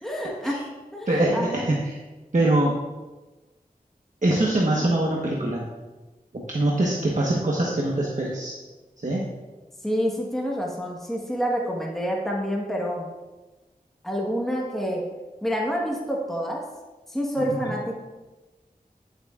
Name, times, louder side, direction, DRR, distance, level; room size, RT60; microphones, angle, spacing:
voice 1, 0.0-1.7 9.8-13.1 14.0-16.6 17.1-17.9, equal, ahead, -2 dB, 1.4 m, -28 dB
voice 2, 1.1-2.0 2.3-2.8 4.2-5.6 6.3-8.5 9.0-9.2 17.6-17.7, right 1 dB, 55° right, -4 dB, 1.2 m, -23 dB
11.0 x 7.6 x 2.5 m, 1.2 s
wide cardioid pair, 40°, 16 cm